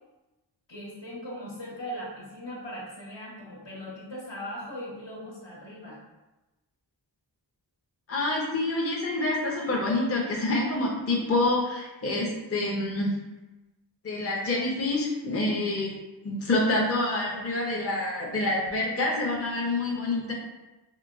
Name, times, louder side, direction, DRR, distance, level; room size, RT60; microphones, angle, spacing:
voice 1, 0.7-6.0, equal, 75° left, -6 dB, 1.1 m, -39 dB
voice 2, 8.1-13.2 14.0-15.9 16.2-20.3, left 2 dB, 35° left, -2 dB, 0.5 m, -27 dB
2.9 x 2.9 x 2.4 m, 1.1 s
wide cardioid pair, 50°, 43 cm